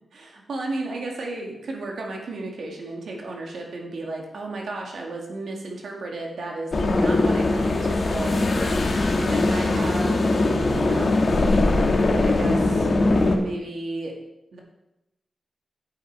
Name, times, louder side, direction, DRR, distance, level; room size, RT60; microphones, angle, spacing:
voice 1, 0.0-8.5 9.2-10.3 10.7-11.2 11.6-12.9 13.2-14.2 14.5-14.6, right 2 dB, 80° right, 0 dB, 2.2 m, -34 dB
sound 1, 6.7-13.4, left 2 dB, 45° left, 1.3 m, -21 dB
9.9 x 8.1 x 4.6 m, 0.90 s
wide cardioid pair, 155°, 0 cm